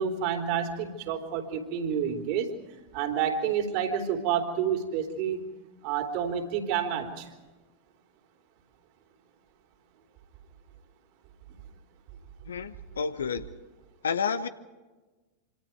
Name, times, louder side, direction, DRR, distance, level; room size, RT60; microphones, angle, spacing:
voice 1, 0.0-2.5 2.9-5.4 5.8-7.3, right 8 dB, 45° right, 4 dB, 3.6 m, -29 dB
voice 2, 12.5-13.4 14.0-14.5, left 6 dB, 70° left, 12 dB, 1.2 m, -30 dB
26.5 x 26.0 x 4.7 m, 1.2 s
figure-of-eight pair, 90°, 0 cm